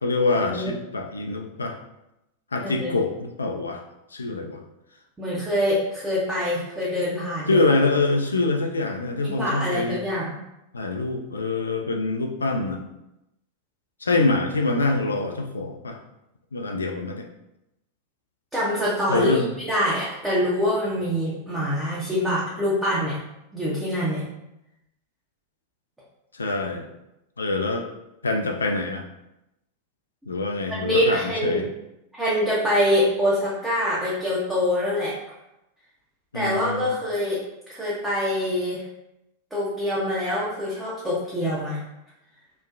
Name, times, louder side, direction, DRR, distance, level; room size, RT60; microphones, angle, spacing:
voice 1, 0.0-1.8 2.5-3.8 4.1-4.6 7.5-10.0 10.7-12.8 14.0-16.0 16.5-17.3 19.1-19.5 26.3-26.9 27.4-27.9 28.2-29.0 30.3-31.6 36.3-36.9, left 3 dB, 75° left, 3 dB, 0.3 m, -25 dB
voice 2, 5.2-7.7 9.2-10.4 18.5-19.3 19.7-23.1 23.5-24.2 30.8-31.6 32.1-35.1 36.3-37.4 37.7-38.8 39.5-41.8, left 1 dB, 10° right, -8 dB, 0.7 m, -25 dB
3.1 x 2.1 x 2.4 m, 0.88 s
figure-of-eight pair, 90°, 0 cm